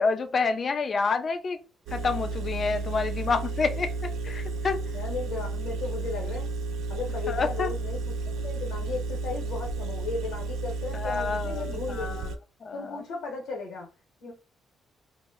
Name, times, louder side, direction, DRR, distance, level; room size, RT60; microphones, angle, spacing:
voice 1, 0.0-1.6 1.9-3.9 4.2-4.8 7.3-7.7 10.9-12.1 12.6-13.0, left 4 dB, 45° left, 0.4 m, -28 dB
Engine, 1.9-12.4, right 3 dB, 80° right, 0.3 m, -32 dB
voice 2, 4.9-6.5 6.9-8.2 8.4-12.3 12.7-13.9 14.2-14.3, left 4 dB, 85° left, 0.9 m, -35 dB
2.1 x 2.1 x 3.4 m
cardioid pair, 90°, 0 cm